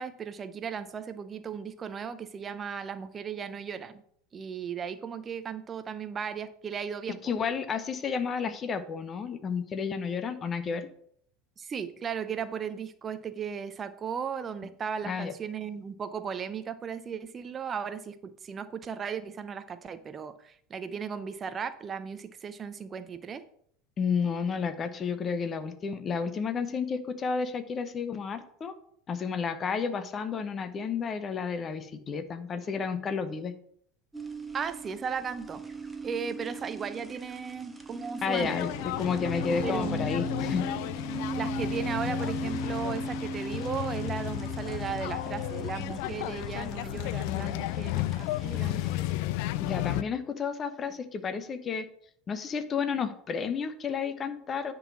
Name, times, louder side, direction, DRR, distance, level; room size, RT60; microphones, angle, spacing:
voice 1, 0.0-4.0 4.3-7.2 11.6-23.4 34.5-35.6 36.0-38.6 39.6-40.3 41.4-48.8, right 7 dB, 25° right, 11 dB, 0.5 m, -36 dB
voice 2, 7.2-10.9 15.0-15.3 24.0-28.7 29.1-33.5 38.2-40.7 49.6-51.8 52.3-54.7, left 6 dB, 30° left, 11 dB, 0.8 m, -31 dB
sound 1, 34.1-49.1, right 3 dB, 10° right, 1.0 m, -39 dB
sound 2, 38.4-50.0, left 15 dB, 55° left, 0.3 m, -33 dB
9.9 x 3.9 x 6.0 m, 0.65 s
figure-of-eight pair, 75°, 0 cm